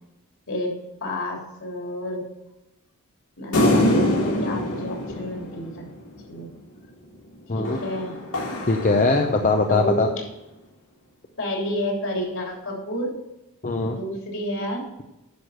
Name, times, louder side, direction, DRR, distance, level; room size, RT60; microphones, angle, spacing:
voice 1, 1.0-2.2 3.4-5.9 6.3-6.5 7.5-8.1 9.7-10.1 11.4-13.1 13.8-14.8, left 1 dB, 65° left, 0 dB, 3.2 m, -30 dB
sound 1, 3.5-6.2 7.6-9.7, left 1 dB, 90° left, 3.6 m, -24 dB
voice 2, 8.7-10.1 13.6-14.0, left 3 dB, 35° left, 3 dB, 0.7 m, -21 dB
10.5 x 6.4 x 6.5 m, 0.95 s
head